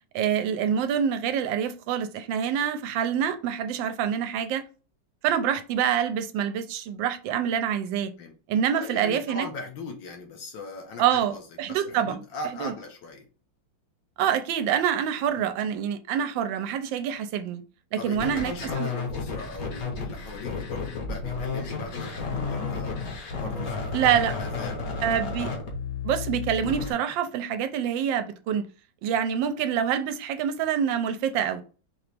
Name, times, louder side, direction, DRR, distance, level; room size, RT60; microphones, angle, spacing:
voice 1, 0.1-4.6 5.2-8.1 8.5-9.5 11.0-11.3 11.6-12.2 12.6-12.7 14.2-17.6 17.9-18.9 23.9-24.3 25.0-25.5 26.0-28.7 29.0-31.6, right 9 dB, 85° right, 1.3 m, -26 dB
voice 2, 8.7-11.4 11.7-13.3 15.4-15.5 18.0-23.0 23.4-24.0 24.4-25.2, left 3 dB, 80° left, 1.8 m, -39 dB
sound 1, 18.1-26.9, left 4 dB, 55° left, 1.4 m, -32 dB
4.5 x 2.9 x 3.4 m
omnidirectional pair, 2.0 m